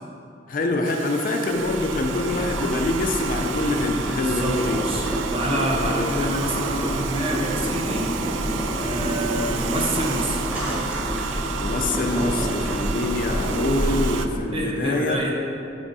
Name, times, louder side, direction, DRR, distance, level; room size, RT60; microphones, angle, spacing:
voice 1, 0.5-4.8 5.8-6.1 11.6-15.2, left 2 dB, 50° left, 3 dB, 0.4 m, -25 dB
Domestic sounds home sounds, 0.8-14.3, right 7 dB, 75° right, 0.3 m, -32 dB
Boiling, 1.5-14.3, equal, 10° right, 1.2 m, -28 dB
voice 2, 4.1-8.1 8.8-10.4 14.5-15.3, right 1 dB, 30° right, -2 dB, 0.9 m, -27 dB
9.4 x 4.3 x 2.7 m, 2.7 s
head